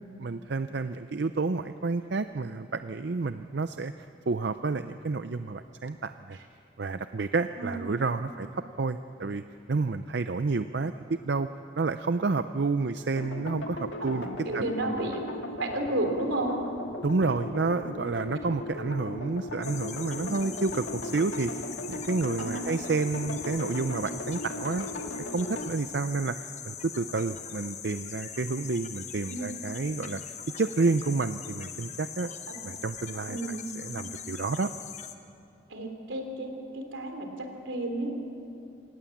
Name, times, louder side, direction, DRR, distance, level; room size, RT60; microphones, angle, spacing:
voice 1, 0.2-3.9 4.3-6.4 6.8-9.4 9.7-11.5 11.8-15.1 17.0-24.9 25.3-30.2 30.6-32.3 32.6-33.4 33.8-34.7, right 3 dB, 60° right, 10 dB, 0.5 m, -30 dB
sound 1, 13.2-25.7, left 1 dB, 75° left, 1.9 m, -37 dB
voice 2, 14.0-15.2 15.6-16.5 17.2-17.3 22.4-22.7 29.3-29.5 32.5-32.6 33.3-33.7 35.7-38.2, right 1 dB, 80° right, 4 dB, 3.3 m, -32 dB
sound 2, 19.6-35.1, left 8 dB, 35° left, 1.2 m, -41 dB
26.5 x 18.5 x 7.3 m, 2.6 s
head